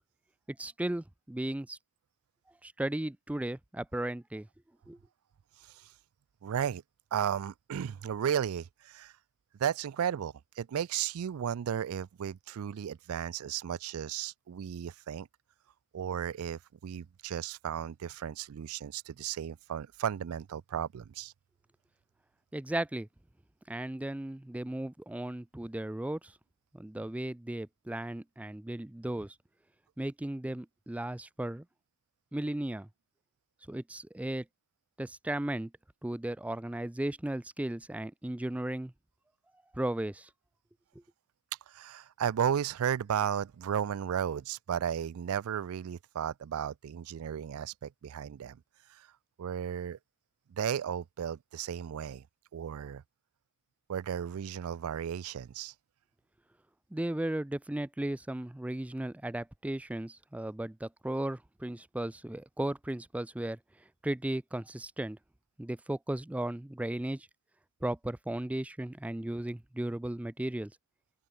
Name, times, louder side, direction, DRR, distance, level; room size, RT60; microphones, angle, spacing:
voice 1, 0.6-1.8 2.6-4.5 4.9-5.0 22.5-23.1 23.7-26.3 26.7-29.3 30.0-31.6 32.3-32.9 33.7-34.4 35.0-35.7 36.0-38.9 39.7-40.3 56.9-63.6 64.0-65.2 65.6-67.3 67.8-70.7, right 1 dB, 5° right, 0.3 m, -35 dB
voice 2, 6.4-6.8 7.1-9.1 9.6-15.3 15.9-21.3 41.7-48.6 48.9-49.1 49.4-50.0 50.5-52.2 52.5-53.0 53.9-55.7, right 8 dB, 75° right, 0.4 m, -34 dB
open air
head